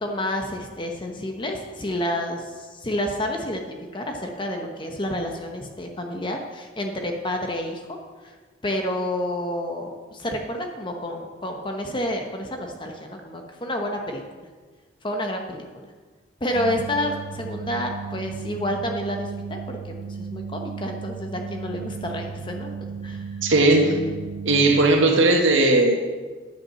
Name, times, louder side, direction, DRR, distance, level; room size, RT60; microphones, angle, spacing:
voice 1, 0.0-3.7 3.9-8.0 8.2-8.4 8.6-14.5 15.0-15.9 16.4-22.7 23.0-23.3, left 1 dB, 25° left, 3 dB, 0.9 m, -29 dB
sound 1, 16.5-24.9, right 5 dB, 55° right, 0.7 m, -35 dB
voice 2, 23.4-24.0 24.4-25.9, right 2 dB, 85° right, 2 dB, 1.5 m, -17 dB
10.0 x 6.1 x 7.5 m, 1.4 s
head